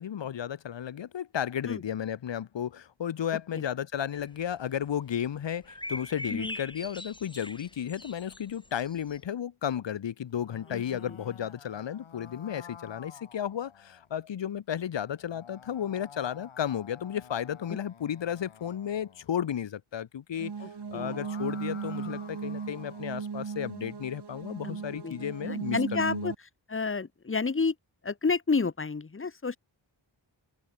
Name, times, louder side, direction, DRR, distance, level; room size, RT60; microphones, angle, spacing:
voice 1, 0.0-20.5 20.9-26.3, left 9 dB, 65° left, 0.9 m, -33 dB
sound 1, 4.1-4.8 5.6-9.2, left 1 dB, 10° left, 1.8 m, -41 dB
sound 2, 10.2-14.1 15.1-19.3 20.7-23.2, left 7 dB, 85° left, 3.1 m, -51 dB
voice 2, 10.7-11.2 20.6-21.2 24.6-25.2 25.4-26.3 26.7-27.7 28.0-29.6, left 4 dB, 25° left, 1.1 m, -30 dB
sound 3, 20.4-26.3, right 6 dB, 55° right, 2.3 m, -37 dB
wide cardioid pair, 100°, 47 cm